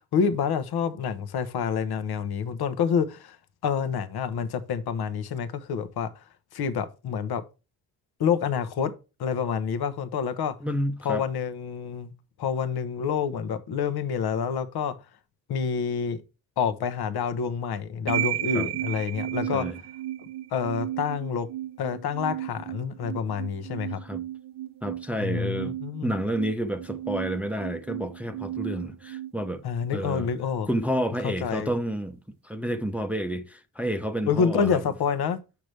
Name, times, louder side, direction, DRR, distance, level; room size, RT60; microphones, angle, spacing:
voice 1, 0.0-3.4 3.6-6.2 6.5-7.4 8.2-8.9 9.2-10.5 11.0-12.1 12.4-15.0 15.5-16.2 16.6-19.7 20.5-21.5 21.8-24.0 25.2-26.1 29.6-30.7 31.2-31.7 34.3-35.4, left 6 dB, 60° left, 1.0 m, -28 dB
voice 2, 10.6-11.2 18.5-18.7 19.5-19.8 24.0-24.2 24.8-29.6 29.9-30.3 30.7-32.2 32.4-34.8, equal, 5° right, 0.7 m, -30 dB
sound 1, 18.1-30.1, right 13 dB, 70° right, 0.9 m, -34 dB
6.6 x 5.9 x 3.2 m
cardioid pair, 85°, 43 cm